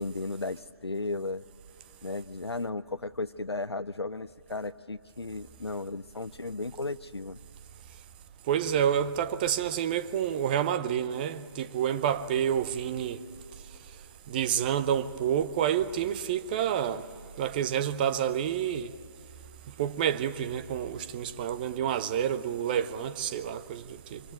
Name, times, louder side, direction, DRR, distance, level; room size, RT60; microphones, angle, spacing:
voice 1, 0.0-1.4 2.0-7.4, left 3 dB, 85° left, 0.6 m, -35 dB
voice 2, 8.5-13.2 14.3-17.0 17.4-18.9 19.8-24.2, right 9 dB, 20° right, 0.7 m, -28 dB
25.5 x 23.5 x 8.9 m
figure-of-eight pair, 145°, 13 cm